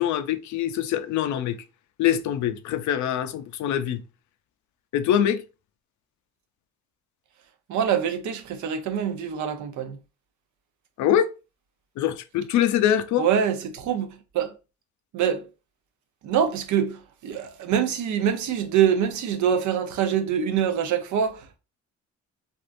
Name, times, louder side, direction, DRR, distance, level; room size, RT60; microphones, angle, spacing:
voice 1, 0.0-1.6 2.0-4.0 4.9-5.4 11.0-11.3 12.0-13.3, left 10 dB, 70° left, 0.5 m, -24 dB
voice 2, 7.7-10.0 13.2-14.1 14.3-14.5 15.1-15.4 16.2-21.6, right 8 dB, 75° right, 0.6 m, -24 dB
3.5 x 2.4 x 2.5 m
cardioid pair, 90°, 30 cm